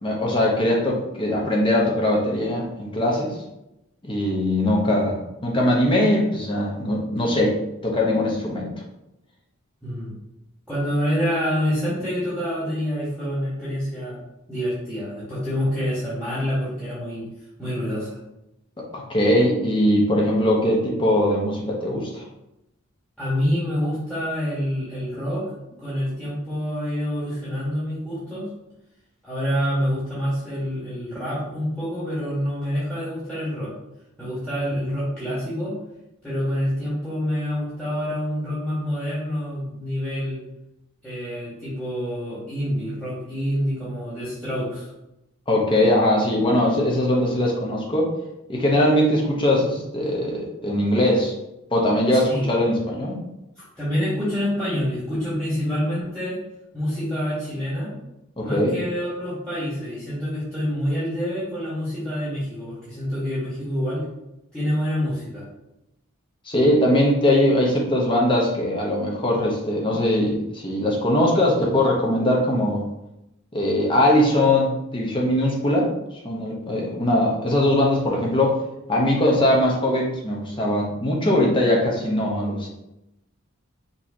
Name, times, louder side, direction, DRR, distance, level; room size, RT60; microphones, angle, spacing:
voice 1, 0.0-3.4 4.0-5.2 5.4-7.6 7.8-8.7 18.9-22.2 45.5-48.1 48.5-51.3 51.7-53.2 58.4-58.8 66.5-72.8 73.5-75.9 76.2-78.6 78.9-82.7, left 1 dB, 25° left, -2 dB, 0.9 m, -21 dB
voice 2, 9.8-10.1 10.7-14.2 14.5-17.2 17.6-18.1 23.2-25.4 25.8-28.4 29.2-33.7 34.2-35.7 36.2-40.4 41.0-44.9 52.1-52.5 53.6-56.4 56.7-57.9 58.4-64.0 64.5-65.4, equal, 5° left, -11 dB, 1.3 m, -27 dB
5.5 x 2.9 x 2.7 m, 0.89 s
head